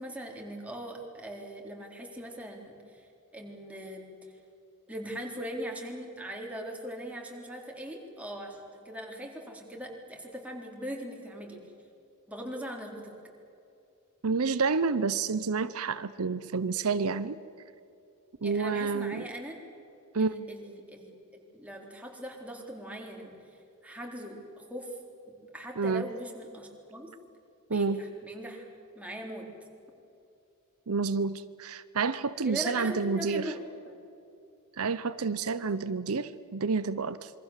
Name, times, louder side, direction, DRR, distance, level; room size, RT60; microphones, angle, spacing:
voice 1, 0.0-3.1 3.3-4.1 4.9-11.6 12.3-13.1 18.4-19.6 20.2-23.4 23.8-25.0 25.4-27.1 27.7-28.6 29.0-29.5 32.4-34.0, equal, 5° right, 0 dB, 3.8 m, -40 dB
voice 2, 14.2-17.4 18.4-19.3 20.1-20.4 25.8-26.0 27.7-28.0 30.9-33.5 34.8-37.3, right 4 dB, 70° right, 13 dB, 0.7 m, -29 dB
27.0 x 23.5 x 7.5 m, 2.6 s
head